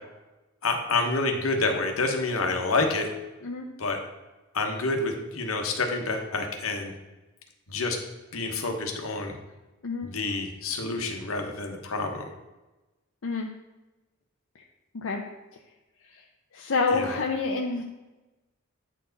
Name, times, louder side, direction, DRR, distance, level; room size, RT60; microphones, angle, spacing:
voice 1, 0.6-3.1 3.8-4.0 4.5-6.9 7.7-8.0 8.3-9.3 10.0-12.3 16.9-17.1, left 3 dB, 85° left, 4 dB, 1.1 m, -28 dB
voice 2, 16.5-17.8, left 4 dB, 65° left, 1 dB, 0.6 m, -28 dB
9.1 x 4.6 x 4.0 m, 1.1 s
head